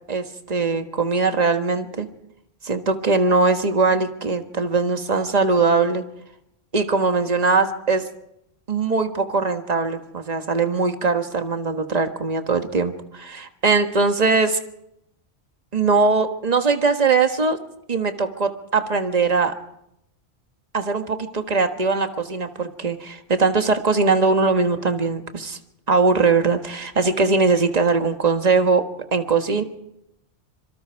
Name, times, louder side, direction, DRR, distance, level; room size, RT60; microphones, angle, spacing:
voice 1, 0.1-2.1 2.6-6.0 6.7-8.1 8.7-14.6 15.7-17.6 17.9-19.6 20.7-25.6 25.9-29.6, right 4 dB, 40° right, 7 dB, 1.6 m, -21 dB
26.0 x 23.5 x 4.7 m, 0.79 s
omnidirectional pair, 1.1 m